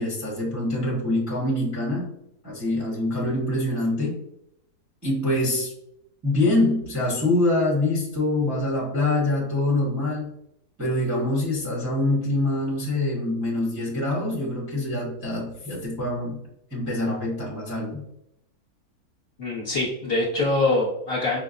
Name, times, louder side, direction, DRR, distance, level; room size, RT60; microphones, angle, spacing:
voice 1, 0.0-2.1 2.4-4.2 5.0-5.7 6.2-10.3 10.8-16.4 16.7-18.0, left 1 dB, 15° right, -5 dB, 0.7 m, -25 dB
voice 2, 19.4-21.4, left 2 dB, 45° left, -5 dB, 1.0 m, -24 dB
5.1 x 2.1 x 2.4 m, 0.79 s
omnidirectional pair, 1.7 m